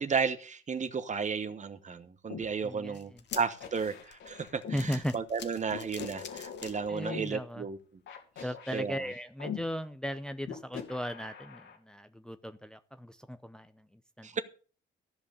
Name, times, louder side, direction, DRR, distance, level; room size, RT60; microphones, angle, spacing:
voice 1, 0.0-7.8 8.7-9.0 14.2-14.4, right 5 dB, 35° right, 1.2 m, -33 dB
sound 1, 2.3-2.5 3.3-4.8 5.7-7.2 8.1-9.6 10.4-11.8, left 8 dB, 75° left, 2.7 m, -42 dB
voice 2, 2.6-3.2 4.7-5.1 6.9-7.7 8.4-14.3, equal, 5° left, 0.7 m, -37 dB
sound 2, 2.9-7.3 7.8-7.9 8.9-9.0, left 8 dB, 60° left, 1.4 m, -47 dB
14.0 x 5.3 x 6.8 m
cardioid pair, 90°, 20 cm